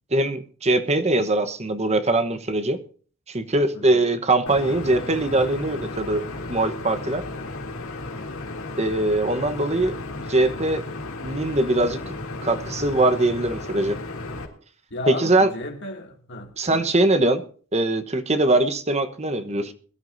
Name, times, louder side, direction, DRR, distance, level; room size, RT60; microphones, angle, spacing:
voice 1, 0.1-2.8 3.3-6.2 6.5-7.2 8.8-10.0 10.3-10.8 11.2-12.1 12.4-14.0 15.1-15.5 16.6-17.4 17.7-19.7, right 2 dB, 30° right, 1.2 m, -22 dB
voice 2, 3.7-4.1 14.9-16.9, left 2 dB, 55° left, 2.6 m, -34 dB
sound 1, 4.5-14.5, left 2 dB, 75° left, 3.0 m, -34 dB
22.5 x 13.0 x 2.7 m
head